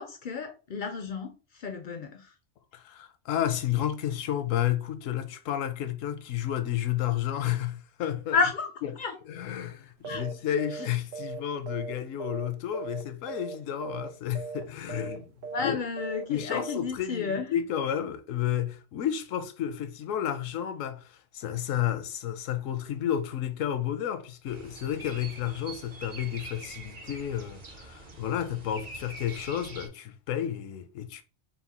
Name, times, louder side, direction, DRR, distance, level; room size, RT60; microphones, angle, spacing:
voice 1, 0.0-2.3 8.3-9.2 10.0-10.3 10.7-10.8 15.5-17.5, left 5 dB, 65° left, 0.5 m, -31 dB
voice 2, 2.7-8.4 9.3-15.3 15.6-15.8 16.3-31.2, left 10 dB, 85° left, 1.0 m, -31 dB
sound 1, 10.0-10.3 10.6-10.9 11.1-12.5 12.7-13.0 13.3-13.6 13.8-14.1 14.3-14.6 14.9-15.2 15.4-15.7 16.0-16.2 16.5-16.8, right 5 dB, 85° right, 1.1 m, -38 dB
sound 2, 24.4-29.9, right 2 dB, 40° right, 0.7 m, -45 dB
4.3 x 2.1 x 4.1 m
omnidirectional pair, 1.3 m